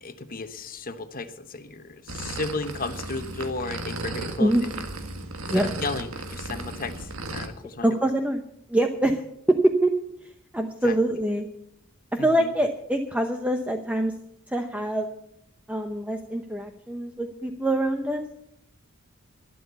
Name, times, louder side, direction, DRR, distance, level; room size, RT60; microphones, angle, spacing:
voice 1, 0.0-4.7 5.5-8.1 9.0-9.1 10.8-10.9 12.2-12.5, left 3 dB, 45° left, 10 dB, 1.1 m, -34 dB
sound 1, 2.1-7.5, right 2 dB, 85° right, 1.7 m, -35 dB
voice 2, 7.8-8.4 8.7-9.2 9.5-9.9 10.2-11.5 12.2-14.1 14.5-15.1 15.7-18.2, right 1 dB, 5° right, 5 dB, 0.8 m, -24 dB
12.0 x 12.0 x 6.9 m, 0.75 s
head